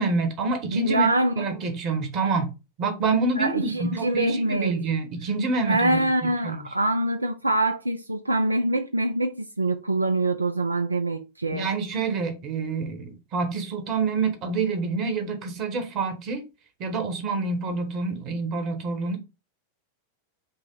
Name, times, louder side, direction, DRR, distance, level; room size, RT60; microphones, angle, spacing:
voice 1, 0.0-1.1 1.4-2.5 2.8-6.6 11.5-16.4 16.8-19.2, right 3 dB, 35° right, 1.1 m, -27 dB
voice 2, 0.7-1.4 3.4-4.7 5.7-11.7, right 2 dB, 80° right, 0.3 m, -24 dB
5.4 x 2.1 x 3.8 m
figure-of-eight pair, 90°, 0 cm